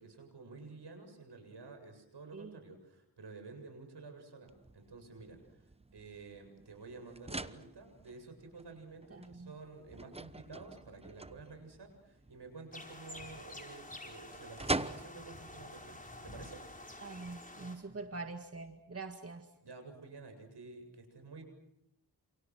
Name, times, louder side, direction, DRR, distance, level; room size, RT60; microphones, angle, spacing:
voice 1, 0.0-16.6 19.6-21.4, right 3 dB, 75° right, 6 dB, 7.8 m, -51 dB
sound 1, 4.5-17.4, right 2 dB, 15° right, 1.0 m, -45 dB
voice 2, 9.1-9.5 17.0-19.5, right 3 dB, 35° right, 6 dB, 2.0 m, -44 dB
sound 2, 12.7-17.8, left 1 dB, 20° left, 5.5 m, -49 dB
28.5 x 28.5 x 6.4 m, 0.79 s
wide cardioid pair, 70°, 41 cm